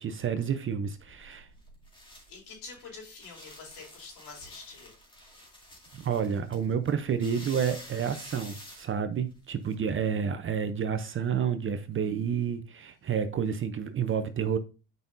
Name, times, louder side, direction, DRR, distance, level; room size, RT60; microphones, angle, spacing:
voice 1, 0.0-1.5 5.9-14.6, right 7 dB, 30° right, 0.6 m, -30 dB
sound 1, 0.9-9.7, left 1 dB, 10° left, 2.1 m, -49 dB
voice 2, 2.3-4.9, left 4 dB, 60° left, 3.8 m, -46 dB
9.4 x 5.3 x 2.6 m
supercardioid pair, 95°, 44 cm